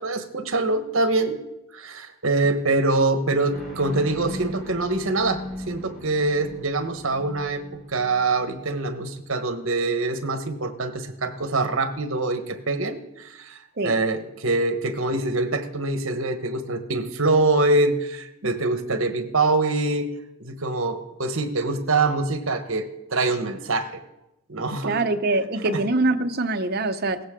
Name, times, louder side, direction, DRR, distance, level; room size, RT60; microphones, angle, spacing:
voice 1, 0.0-1.4 1.7-7.6 7.9-20.1 20.4-24.0 24.5-25.0, right 2 dB, 60° right, 9 dB, 1.3 m, -24 dB
sound 1, 3.5-9.0, left 1 dB, ahead, 5.2 m, -38 dB
voice 2, 24.8-27.2, right 2 dB, 45° right, 8 dB, 0.8 m, -24 dB
17.0 x 14.0 x 3.8 m, 0.91 s
head